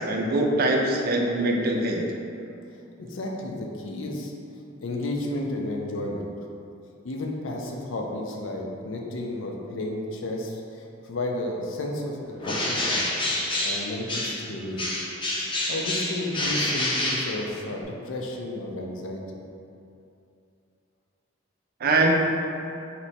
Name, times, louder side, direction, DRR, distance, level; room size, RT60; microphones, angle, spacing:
voice 1, 0.0-2.0 21.8-22.1, right 2 dB, 50° right, 1 dB, 0.4 m, -23 dB
voice 2, 3.0-4.3 4.8-6.3 7.0-13.0 13.6-14.9 15.7-19.4, left 1 dB, 70° left, 1 dB, 0.5 m, -32 dB
Bird, 12.4-14.5 14.8-17.8, left 1 dB, 25° left, 0.6 m, -28 dB
3.2 x 2.9 x 4.1 m, 2.6 s
head